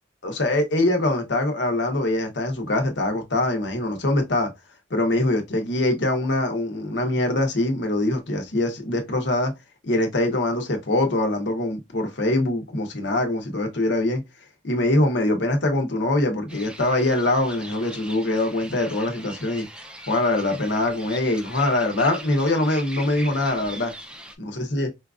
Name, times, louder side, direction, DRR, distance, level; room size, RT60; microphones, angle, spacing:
voice 1, 0.2-4.5 4.9-9.5 9.8-14.2 14.6-19.6 20.1-23.9 24.6-24.9, left 1 dB, 65° left, 1.0 m, -23 dB
sound 1, 16.5-24.4, right 1 dB, 5° right, 0.4 m, -41 dB
4.4 x 2.4 x 2.4 m
head